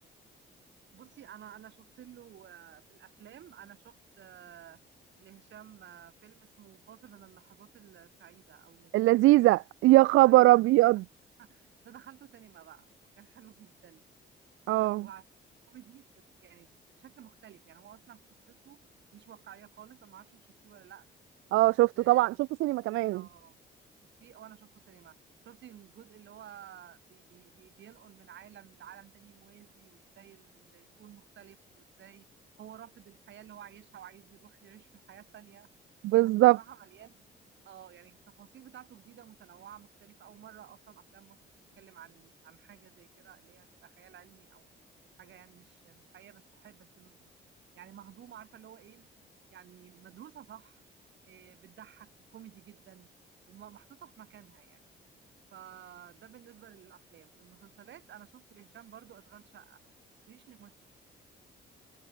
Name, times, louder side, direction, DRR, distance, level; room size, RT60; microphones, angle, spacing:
voice 1, 0.9-4.8 5.2-9.4 10.2-10.6 11.4-12.9 13.2-14.1 14.7-15.3 15.7-16.7 17.0-18.8 19.1-21.1 21.6-22.3 23.1-23.6 24.0-25.2 25.4-32.3 32.6-35.7 36.2-37.3 37.6-41.4 41.8-44.7 45.2-47.3 47.7-49.1 49.5-50.8 51.3-53.1 53.5-54.9 55.5-59.8 60.3-60.7, right 10 dB, 65° right, 3.4 m, -53 dB
voice 2, 8.9-11.0 14.7-15.1 21.5-23.2 36.0-36.6, right 18 dB, 85° right, 0.5 m, -21 dB
cardioid pair, 90°, 20 cm